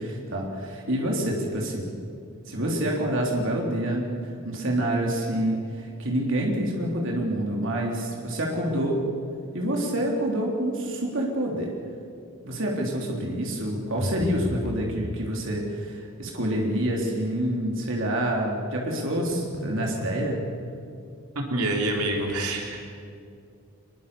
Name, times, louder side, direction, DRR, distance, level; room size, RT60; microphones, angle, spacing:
voice 1, 0.0-1.9 2.5-4.1 4.4-9.0 9.5-11.7 12.4-20.4, right 1 dB, 60° right, -1 dB, 3.5 m, -27 dB
sound 1, 14.0-14.9 19.3-20.2, equal, 50° left, 3.6 m, -33 dB
voice 2, 21.4-22.8, right 1 dB, 90° right, 1 dB, 3.7 m, -26 dB
24.0 x 22.0 x 7.0 m, 2.5 s
head